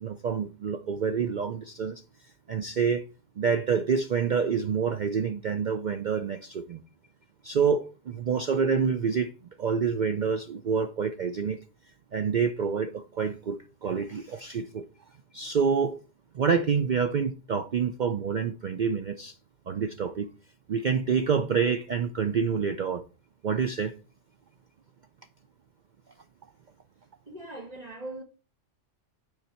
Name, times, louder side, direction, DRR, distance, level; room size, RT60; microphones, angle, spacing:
voice 1, 0.0-3.0 3.4-6.8 7.4-9.3 9.6-11.6 12.1-14.9 15.3-16.0 16.3-19.3 19.7-20.3 20.7-23.0 23.4-23.9, right 6 dB, 55° right, 0.5 m, -27 dB
voice 2, 27.3-28.2, right 2 dB, 35° right, 1.8 m, -40 dB
9.5 x 4.1 x 4.3 m
omnidirectional pair, 1.3 m